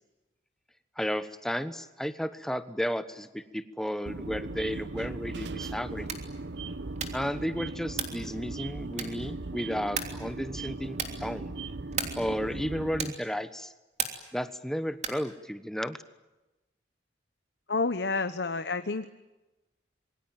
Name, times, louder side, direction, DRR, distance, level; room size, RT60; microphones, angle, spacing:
voice 1, 1.0-6.1 7.1-11.5 12.1-13.7 14.3-16.0, equal, 5° left, 11 dB, 1.1 m, -33 dB
sound 1, 4.1-13.1, right 3 dB, 70° right, 0.9 m, -38 dB
sound 2, 6.0-6.4 6.9-7.3 7.9-8.3 8.9-9.3 9.9-10.3 10.9-11.3 11.9-12.3 13.0-13.3 14.0-14.4 15.0-15.3, right 6 dB, 40° right, 3.2 m, -35 dB
voice 2, 17.7-19.0, left 3 dB, 65° left, 10 dB, 1.0 m, -29 dB
27.0 x 23.0 x 9.1 m, 1.1 s
head